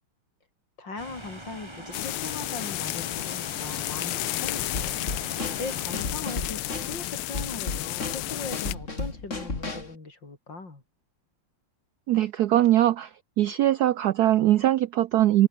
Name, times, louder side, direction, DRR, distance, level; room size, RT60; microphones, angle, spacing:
voice 1, 0.8-5.0 5.6-10.8, left 3 dB, 55° left, 5.6 m, -39 dB
sound 1, 1.0-6.0, right 1 dB, 10° right, 7.9 m, -42 dB
sound 2, 1.9-8.7, left 17 dB, 85° left, 1.5 m, -32 dB
Drum kit / Snare drum, 4.7-10.0, left 3 dB, 35° left, 3.9 m, -34 dB
voice 2, 12.1-15.5, right 13 dB, 90° right, 0.8 m, -21 dB
open air
omnidirectional pair, 2.4 m